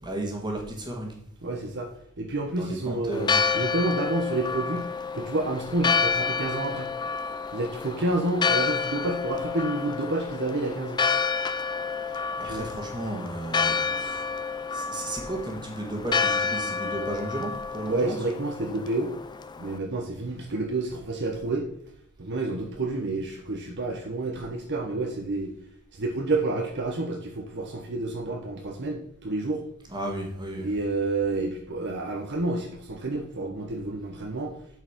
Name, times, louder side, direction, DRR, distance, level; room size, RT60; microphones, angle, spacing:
voice 1, 0.0-1.1 2.5-3.5 12.4-14.3 14.7-18.3 29.9-30.7, right 1 dB, 20° right, 1 dB, 1.7 m, -34 dB
voice 2, 1.4-1.9 2.2-3.3 3.5-4.9 5.1-6.9 7.5-11.0 12.4-12.7 17.9-19.1 19.6-21.7 22.2-25.5 25.9-29.6 30.6-34.5, right 2 dB, 50° right, 2 dB, 1.0 m, -29 dB
Church bell, 3.1-19.8, left 5 dB, 20° left, 0.3 m, -29 dB
8.0 x 4.8 x 5.9 m, 0.72 s
head